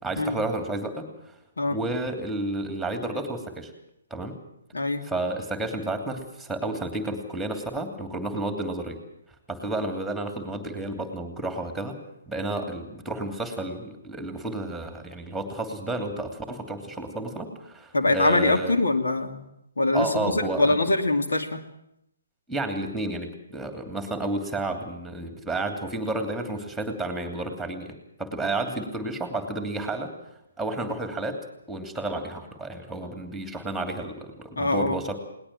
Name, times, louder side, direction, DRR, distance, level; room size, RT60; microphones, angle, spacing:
voice 1, 0.0-1.1 1.7-3.7 4.1-4.4 5.0-9.0 9.5-12.0 12.3-18.8 19.9-20.8 22.5-30.1 30.6-31.4 31.7-35.2, right 2 dB, ahead, 6 dB, 2.9 m, -31 dB
voice 2, 4.7-5.1 17.9-19.5 19.8-21.6 34.6-35.0, left 2 dB, 70° left, 5 dB, 2.5 m, -23 dB
21.0 x 19.0 x 7.5 m, 0.81 s
figure-of-eight pair, 140°, 0 cm